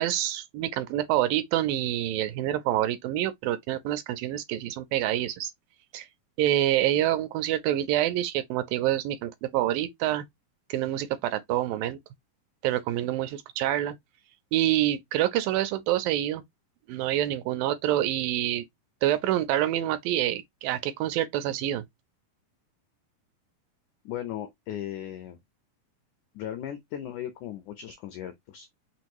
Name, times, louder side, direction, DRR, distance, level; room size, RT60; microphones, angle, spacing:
voice 1, 0.0-5.5 5.9-6.1 6.4-10.2 10.7-12.0 12.6-14.0 14.5-16.4 16.9-18.6 19.0-21.8, right 13 dB, 80° right, 2.2 m, -27 dB
voice 2, 24.0-25.4 26.3-28.7, left 11 dB, 85° left, 1.7 m, -37 dB
6.2 x 2.6 x 2.9 m
omnidirectional pair, 4.2 m